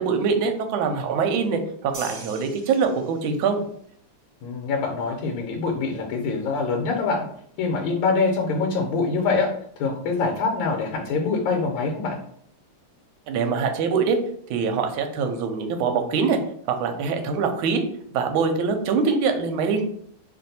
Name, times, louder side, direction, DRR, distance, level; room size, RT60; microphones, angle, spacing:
voice 1, 0.0-3.6 13.3-14.2 14.5-16.4 16.7-17.8 18.1-19.8, right 5 dB, 75° right, 5 dB, 1.3 m, -23 dB
sound 1, 1.9-3.5, right 3 dB, 45° right, 0.4 m, -41 dB
voice 2, 4.4-7.2 7.6-9.5 9.8-12.2, left 4 dB, 80° left, 1 dB, 1.5 m, -24 dB
3.2 x 2.5 x 4.0 m, 0.64 s
omnidirectional pair, 2.4 m